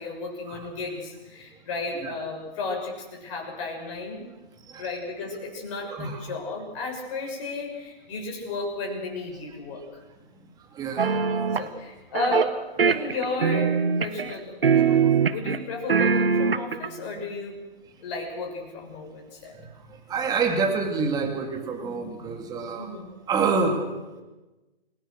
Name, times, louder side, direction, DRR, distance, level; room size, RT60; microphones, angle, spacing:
voice 1, 0.0-4.3 4.8-10.0 11.6-17.6 18.0-19.6 22.7-23.1, left 3 dB, 30° left, 1 dB, 6.7 m, -34 dB
voice 2, 5.9-6.3 10.7-11.4 14.8-15.0 19.6-19.7 20.1-22.9 23.3-23.8, right 4 dB, 15° right, 3 dB, 2.6 m, -27 dB
sound 1, 11.0-11.7 12.1-12.5 12.8-14.3 14.6-15.6 15.9-16.9, right 6 dB, 65° right, 1.6 m, -22 dB
29.5 x 18.0 x 6.5 m, 1.1 s
figure-of-eight pair, 135°, 30 cm